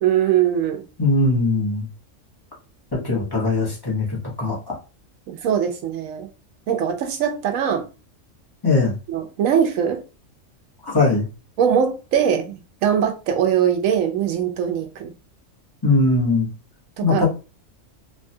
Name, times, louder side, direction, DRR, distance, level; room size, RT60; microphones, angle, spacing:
voice 1, 0.0-0.8 5.3-6.3 6.7-7.9 9.1-10.0 11.6-15.1 17.0-17.3, right 8 dB, 90° right, 1.0 m, -21 dB
voice 2, 1.0-1.9 3.0-4.8 8.6-8.9 10.9-11.3 15.8-16.5 17.0-17.3, left 2 dB, 20° left, 0.9 m, -20 dB
3.2 x 2.2 x 2.7 m
omnidirectional pair, 1.3 m